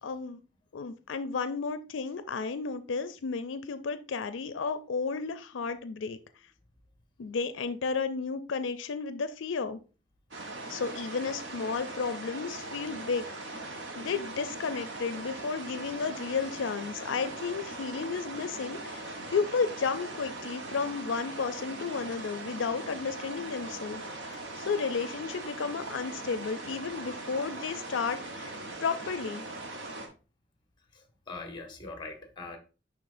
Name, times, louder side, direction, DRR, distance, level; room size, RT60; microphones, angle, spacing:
voice 1, 0.0-0.4 0.7-6.2 7.2-9.8 10.7-13.2 14.0-28.5 28.8-29.4, left 5 dB, 85° left, 0.4 m, -33 dB
sound 1, 10.3-30.1, right 2 dB, 75° right, 1.2 m, -40 dB
voice 2, 30.9-32.6, left 3 dB, 25° left, 1.2 m, -42 dB
10.5 x 3.5 x 2.6 m
head